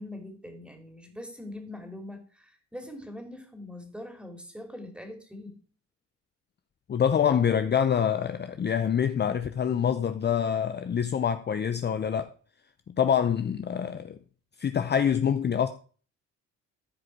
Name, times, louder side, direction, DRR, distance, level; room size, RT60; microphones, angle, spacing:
voice 1, 0.0-5.6, left 1 dB, 5° right, 2.8 m, -42 dB
voice 2, 6.9-12.3 13.0-14.2 14.6-15.7, left 8 dB, 35° left, 0.6 m, -25 dB
14.0 x 5.0 x 4.7 m
cardioid pair, 90°, 30 cm